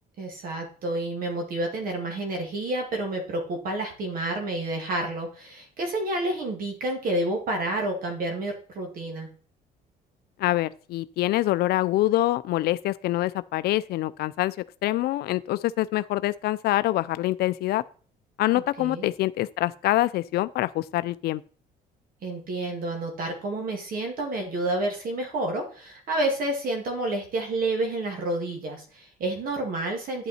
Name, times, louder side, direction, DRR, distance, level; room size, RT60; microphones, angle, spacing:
voice 1, 0.2-9.3 18.8-19.1 22.2-30.3, right 2 dB, 60° right, 2.1 m, -29 dB
voice 2, 10.4-14.6 14.8-17.8 18.4-21.4, left 16 dB, 70° left, 0.4 m, -25 dB
10.0 x 5.5 x 4.2 m
cardioid pair, 110°, 17 cm